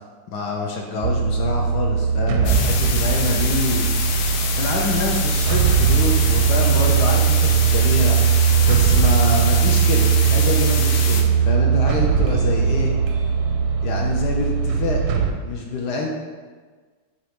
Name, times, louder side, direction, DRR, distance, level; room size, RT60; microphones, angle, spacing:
voice 1, 0.3-3.9 4.6-8.4 8.7-13.0 13.8-16.1, left 3 dB, 65° left, 0 dB, 1.1 m, -26 dB
sound 1, 1.0-15.3, right 7 dB, 80° right, 1.4 m, -19 dB
sound 2, 2.5-11.2, left 5 dB, 85° left, 1.5 m, -27 dB
6.8 x 3.0 x 5.1 m, 1.4 s
omnidirectional pair, 2.3 m